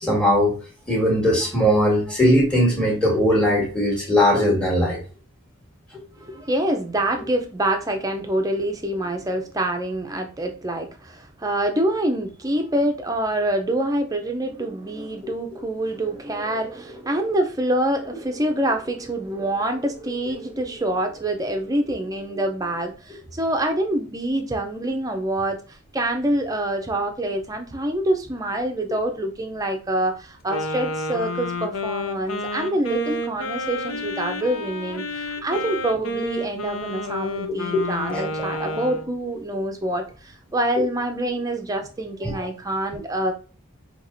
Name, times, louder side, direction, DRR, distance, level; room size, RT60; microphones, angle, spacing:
voice 1, 0.0-0.5 0.9-5.0 37.7-37.8 38.1-38.8 42.2-42.5 42.9-43.0, equal, 5° left, -3 dB, 1.4 m, -20 dB
voice 2, 6.2-43.3, right 1 dB, 15° right, 4 dB, 0.5 m, -26 dB
Wind instrument woodwind instrument, 30.5-39.1, left 1 dB, 80° left, 0.7 m, -30 dB
5.7 x 2.9 x 2.6 m, 0.37 s
head